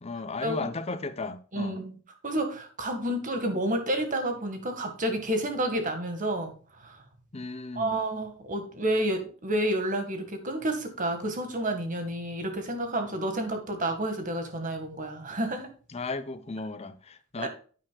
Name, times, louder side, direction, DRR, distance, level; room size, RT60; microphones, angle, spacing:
voice 1, 0.0-1.8 7.3-8.0 15.9-17.5, left 3 dB, 30° left, 0.7 m, -35 dB
voice 2, 1.5-1.9 2.2-6.5 6.8-7.0 7.8-15.7 17.4-17.5, right 1 dB, 35° right, 1.7 m, -30 dB
9.3 x 9.1 x 2.3 m
head